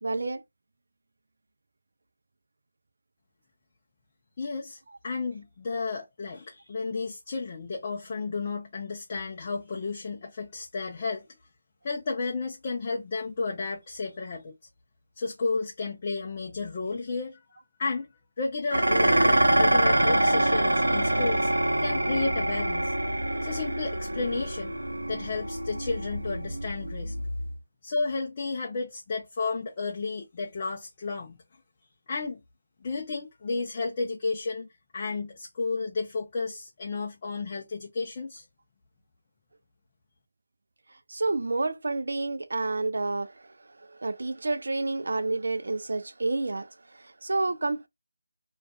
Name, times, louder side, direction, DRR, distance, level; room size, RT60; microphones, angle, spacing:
voice 1, 0.0-0.4 41.1-47.9, right 2 dB, 65° right, 0.4 m, -30 dB
voice 2, 4.4-11.3 11.8-14.5 15.2-17.4 17.8-18.1 18.4-22.9 23.4-24.7 25.1-27.2 27.8-31.4 32.1-32.4 32.8-34.7 34.9-38.5, left 4 dB, 30° left, 0.5 m, -32 dB
Dishes pots and pans, 18.7-27.5, right 1 dB, 85° right, 0.8 m, -25 dB
2.4 x 2.3 x 2.3 m
figure-of-eight pair, 165°, 0 cm